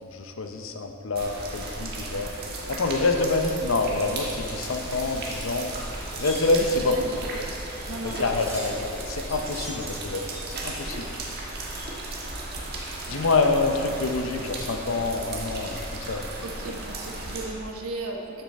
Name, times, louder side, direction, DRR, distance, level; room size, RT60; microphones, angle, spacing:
voice 1, 0.0-2.3 2.7-5.7 6.2-7.0 8.0-11.1 13.1-16.2, left 3 dB, 65° left, 5 dB, 0.8 m, -26 dB
sound 1, 1.2-17.5, right 2 dB, 50° right, 1.5 m, -35 dB
Rattle (instrument), 1.5-7.5, left 1 dB, 15° left, 2.4 m, -48 dB
Wind chime, 6.1-13.1 13.4-14.2 14.6-15.1 15.5-16.5 16.8-17.0, equal, 15° right, 2.3 m, -44 dB
voice 2, 6.8-7.5 7.9-8.8 16.4-18.4, right 2 dB, 75° right, 2 dB, 1.1 m, -36 dB
12.5 x 7.1 x 4.2 m, 2.9 s
head